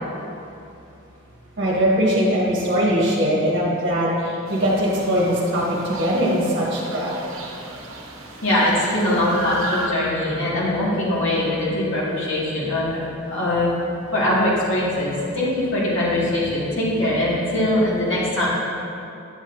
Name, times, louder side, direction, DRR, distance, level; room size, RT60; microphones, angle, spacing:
voice 1, 1.6-7.1, equal, 45° right, -5 dB, 1.2 m, -21 dB
sound 1, 4.5-9.9, right 2 dB, 70° right, 0.9 m, -35 dB
voice 2, 8.4-13.0 13.3-13.7 14.1-18.5, left 1 dB, 65° left, -7 dB, 1.8 m, -22 dB
9.0 x 7.3 x 2.6 m, 2.7 s
head